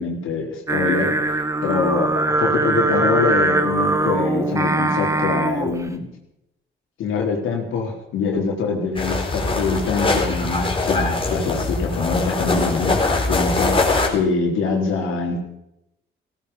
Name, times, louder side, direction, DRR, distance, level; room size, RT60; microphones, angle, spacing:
voice 1, 0.0-6.1 7.0-15.4, left 4 dB, 85° left, 0 dB, 3.9 m, -24 dB
Singing, 0.7-5.8, right 2 dB, 15° right, 2.0 m, -21 dB
sound 1, 9.0-14.1, left 3 dB, 25° left, 4.0 m, -22 dB
17.5 x 14.5 x 5.6 m, 0.82 s
cardioid pair, 90°, 20 cm